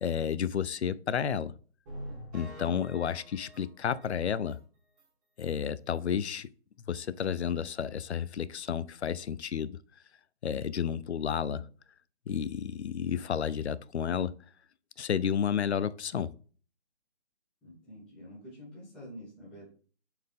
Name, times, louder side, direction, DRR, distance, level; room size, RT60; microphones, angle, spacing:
voice 1, 0.0-1.5 2.3-4.6 5.4-6.5 6.9-9.8 10.4-11.7 12.3-14.4 15.0-16.3, left 8 dB, 70° left, 0.5 m, -31 dB
sound 1, 1.9-4.6 5.0-5.1 5.5-5.6 5.9-6.0, equal, 15° right, 3.0 m, -46 dB
voice 2, 2.6-3.1 17.6-19.6, equal, 5° left, 1.4 m, -47 dB
7.4 x 4.6 x 3.6 m
hypercardioid pair, 165°, 34 cm